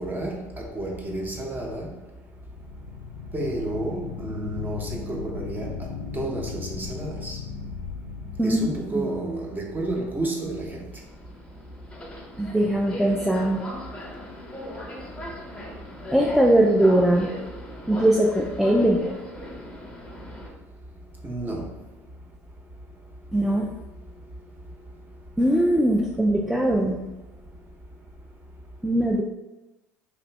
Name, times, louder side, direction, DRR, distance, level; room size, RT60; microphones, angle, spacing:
voice 1, 0.0-1.9 3.3-5.7 6.1-7.4 8.4-10.7 21.2-21.6, right 1 dB, 25° right, 0 dB, 0.8 m, -30 dB
sound 1, 2.3-9.3, left 5 dB, 90° left, 0.4 m, -37 dB
voice 2, 8.4-9.1 12.4-13.7 16.1-17.4 17.9-19.0 23.3-23.7 25.4-27.1 28.8-29.2, right 1 dB, 5° right, -1 dB, 0.3 m, -21 dB
Subway metro underground, 10.9-20.5, left 1 dB, 10° left, 1.0 m, -38 dB
3.0 x 2.5 x 3.2 m, 1.0 s
hypercardioid pair, 65°, 8 cm